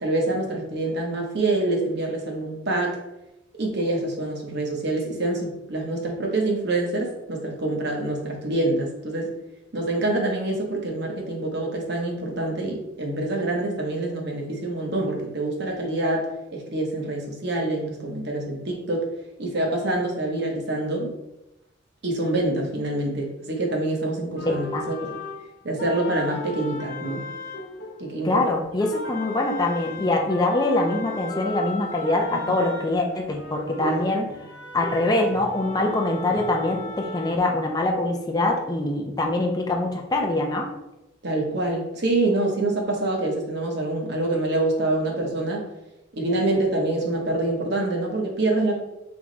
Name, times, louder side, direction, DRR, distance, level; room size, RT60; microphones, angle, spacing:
voice 1, 0.0-3.0 3.6-9.3 9.7-19.1 19.4-21.1 22.0-25.1 25.6-27.2 28.0-28.4 33.8-34.0 41.2-45.6 46.1-48.7, right 2 dB, 60° right, 0 dB, 0.9 m, -26 dB
sound 1, 24.4-28.5 28.8-37.4, left 2 dB, 70° left, 0.7 m, -36 dB
voice 2, 24.5-24.8 28.2-34.3 34.7-40.7, left 2 dB, 20° left, 1 dB, 0.4 m, -24 dB
3.5 x 3.1 x 3.8 m, 0.94 s
head